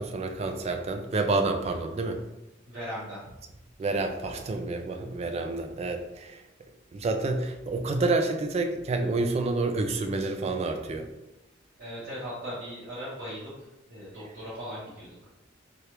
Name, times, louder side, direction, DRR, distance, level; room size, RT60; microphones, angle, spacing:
voice 1, 0.0-2.2 3.8-6.4 6.9-11.1, right 3 dB, 35° right, 6 dB, 0.3 m, -28 dB
voice 2, 2.6-3.2 11.8-15.2, equal, 80° right, -12 dB, 1.1 m, -38 dB
3.2 x 2.4 x 2.9 m, 0.95 s
head